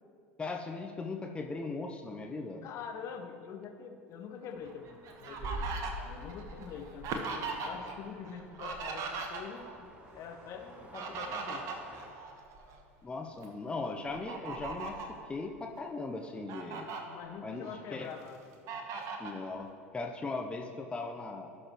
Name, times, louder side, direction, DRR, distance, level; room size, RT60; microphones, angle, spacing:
voice 1, 0.4-2.7 13.0-16.9 17.4-18.1 19.2-21.5, left 3 dB, 15° left, 3 dB, 0.7 m, -39 dB
voice 2, 2.6-11.7 17.1-18.4, left 6 dB, 45° left, 5 dB, 0.9 m, -45 dB
sound 1, 4.5-12.1, right 1 dB, 20° right, 1.4 m, -56 dB
Fowl, 4.6-8.0 8.2-9.8 10.7-12.8 13.3-13.4 14.1-15.2 15.8-15.9 16.2-17.0 17.5-18.2 18.7-19.4, right 4 dB, 45° right, 1.2 m, -39 dB
17.0 x 6.4 x 3.1 m, 2.4 s
figure-of-eight pair, 75°, 7 cm